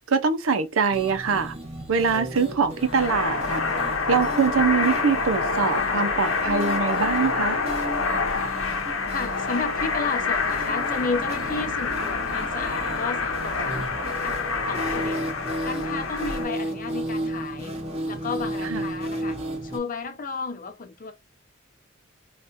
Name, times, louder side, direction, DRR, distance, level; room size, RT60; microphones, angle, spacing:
voice 1, 0.1-1.5 1.9-3.6 4.1-7.6 18.7-18.9, right 5 dB, 85° right, 0.6 m, -23 dB
sound 1, 0.9-19.8, right 1 dB, 30° right, 0.9 m, -34 dB
sound 2, 2.8-16.4, left 4 dB, 85° left, 0.8 m, -27 dB
voice 2, 9.1-17.8 18.1-21.1, left 4 dB, 45° left, 0.7 m, -33 dB
3.5 x 2.4 x 2.5 m
head